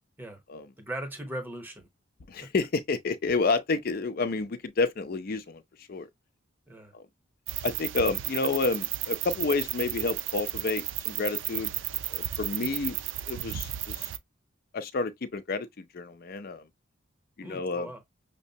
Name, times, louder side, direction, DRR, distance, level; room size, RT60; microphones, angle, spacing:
voice 1, 0.8-1.9 2.4-2.5 6.7-6.9 8.4-8.5 17.4-18.0, right 1 dB, 10° right, 0.8 m, -39 dB
voice 2, 2.3-5.6 5.9-6.1 6.9-7.1 7.6-11.7 12.1-13.0 13.3-14.1 14.7-16.7 17.4-17.9, left 3 dB, 50° left, 0.5 m, -30 dB
sound 1, 7.5-14.2, right 13 dB, 70° right, 0.3 m, -33 dB
5.9 x 2.0 x 2.7 m
head